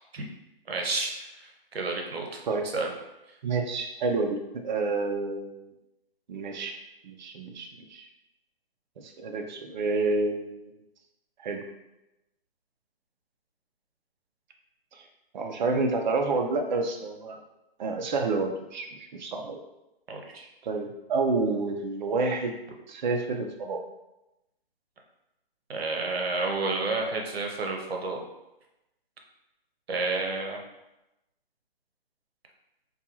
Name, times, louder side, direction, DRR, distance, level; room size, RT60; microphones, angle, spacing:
voice 1, 0.7-2.4 2.7-2.9 20.1-20.5 25.7-28.2 29.9-30.6, right 3 dB, 90° right, 1 dB, 0.7 m, -30 dB
voice 2, 3.4-5.7 6.3-8.1 9.0-10.7 11.4-11.6 14.9-15.0 15.3-17.4 17.8-19.6 20.6-22.5 22.9-23.8, right 3 dB, 50° right, 3 dB, 0.5 m, -29 dB
2.5 x 2.3 x 2.8 m, 0.93 s
hypercardioid pair, 150°, 30 cm